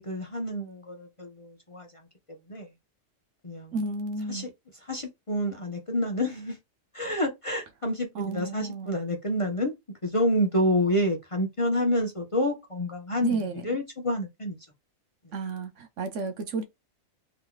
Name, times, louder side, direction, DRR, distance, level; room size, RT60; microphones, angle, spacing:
voice 1, 0.0-1.9 2.5-2.7 3.4-3.7 4.3-4.5 4.9-6.6 6.9-9.7 10.0-14.6, equal, 30° left, 0.8 m, -28 dB
voice 2, 3.7-4.5 8.1-8.9 13.2-13.5 15.3-16.6, right 3 dB, 65° right, 1.0 m, -32 dB
3.6 x 3.0 x 2.2 m
omnidirectional pair, 1.4 m